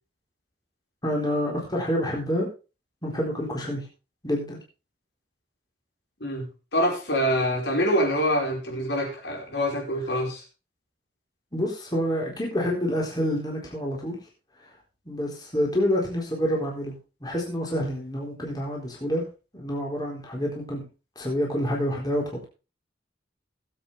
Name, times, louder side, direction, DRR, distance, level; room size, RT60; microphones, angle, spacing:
voice 1, 1.0-2.5 3.0-3.9 4.2-4.6 11.5-14.2 15.1-16.9 17.2-19.2 19.5-20.9 21.2-22.5, equal, 20° left, -2 dB, 4.1 m, -27 dB
voice 2, 6.7-10.4, equal, 70° left, 0 dB, 5.0 m, -25 dB
19.5 x 8.3 x 3.4 m, 0.32 s
head